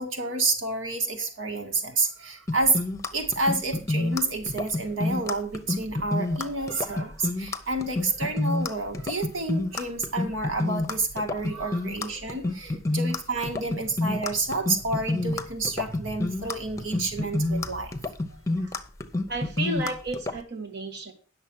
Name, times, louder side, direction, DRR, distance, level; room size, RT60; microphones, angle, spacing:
voice 1, 0.0-2.8 3.1-18.0 18.6-18.7, right 3 dB, 85° right, 5 dB, 2.0 m, -29 dB
sound 1, 2.5-20.4, left 2 dB, 15° left, 0.9 m, -28 dB
voice 2, 19.3-21.1, right 2 dB, 55° right, 2 dB, 1.8 m, -34 dB
10.0 x 6.6 x 6.2 m, 0.38 s
head